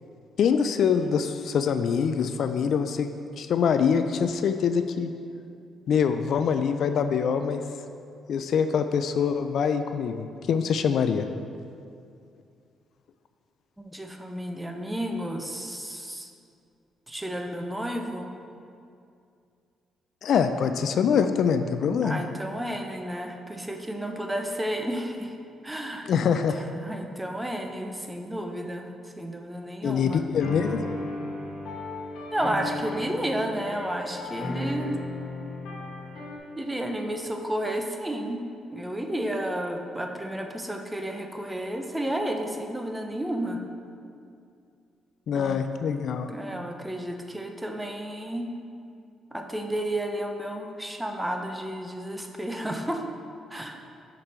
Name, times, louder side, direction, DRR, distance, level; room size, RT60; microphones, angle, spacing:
voice 1, 0.4-3.1 3.4-5.1 5.9-7.6 8.3-11.3 20.2-22.2 26.1-26.6 29.8-31.0 45.3-46.3, left 6 dB, 65° left, 9 dB, 0.3 m, -24 dB
voice 2, 13.8-16.3 17.1-18.3 22.0-25.3 25.6-30.2 32.3-35.0 36.6-38.4 38.7-43.6 45.3-45.6 46.3-48.6 49.3-53.0 53.5-53.8, right 1 dB, 10° right, 4 dB, 0.6 m, -32 dB
sound 1, 30.4-36.4, left 2 dB, 80° left, 1.3 m, -35 dB
5.9 x 5.1 x 4.3 m, 2.4 s
cardioid pair, 90°, 0 cm